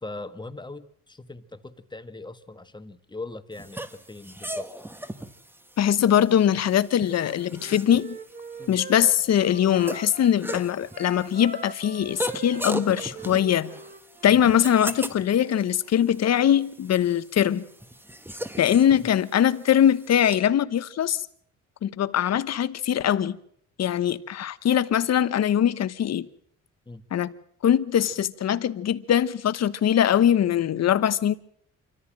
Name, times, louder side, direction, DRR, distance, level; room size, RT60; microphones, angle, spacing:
voice 1, 0.0-4.7 8.6-8.8 14.2-14.4 19.0-19.1 26.9-27.0, left 2 dB, 15° left, 1.5 m, -40 dB
sound 1, 3.5-20.4, right 1 dB, 5° right, 1.4 m, -38 dB
voice 2, 5.8-8.2 8.7-13.7 14.2-17.6 18.6-21.2 21.8-23.4 23.8-26.3 27.1-27.3 27.6-31.3, left 10 dB, 60° left, 1.1 m, -22 dB
Wind instrument woodwind instrument, 7.0-10.4 10.9-14.5, right 5 dB, 30° right, 1.9 m, -42 dB
26.0 x 14.5 x 7.5 m
cardioid pair, 90°, 30 cm